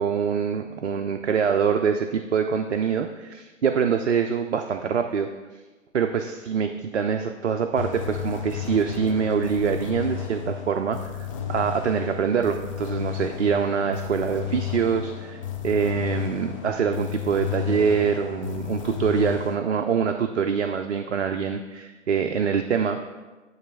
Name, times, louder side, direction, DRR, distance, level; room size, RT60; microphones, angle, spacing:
voice 1, 0.0-5.3 5.9-23.0, right 6 dB, 60° right, 6 dB, 0.6 m, -25 dB
sound 1, 7.7-19.6, left 10 dB, 25° left, 0.6 m, -32 dB
9.4 x 3.2 x 6.1 m, 1.2 s
figure-of-eight pair, 130°, 39 cm